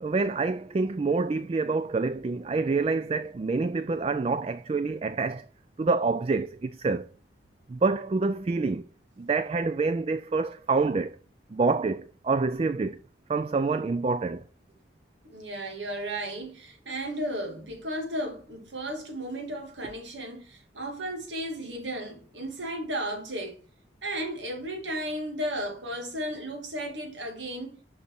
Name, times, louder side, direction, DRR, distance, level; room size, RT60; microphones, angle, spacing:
voice 1, 0.0-5.5 5.8-7.1 7.7-8.9 9.2-11.2 11.5-13.0 13.3-14.4, right 4 dB, 30° right, 0.3 m, -27 dB
voice 2, 15.2-23.6 24.0-27.8, right 1 dB, 90° right, 2.2 m, -34 dB
6.5 x 5.3 x 4.5 m
head